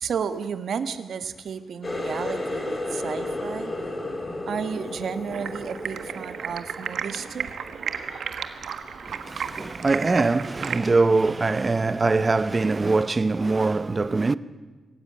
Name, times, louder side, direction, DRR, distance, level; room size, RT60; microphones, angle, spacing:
voice 1, 0.0-3.7 4.5-7.5, right 6 dB, 70° right, 1.3 m, -32 dB
Water tap faucet, 1.8-7.3 7.7-8.2 8.6-8.9 9.7-9.8, left 2 dB, 25° left, 3.9 m, -33 dB
Stream, 5.3-10.8, right 7 dB, 85° right, 1.4 m, -34 dB
Laughter, 5.5-12.0, right 2 dB, 50° right, 6.9 m, -47 dB
voice 2, 9.0-14.4, right 3 dB, 25° right, 0.6 m, -22 dB
25.5 x 15.5 x 8.7 m
wide cardioid pair, 160°, 0 cm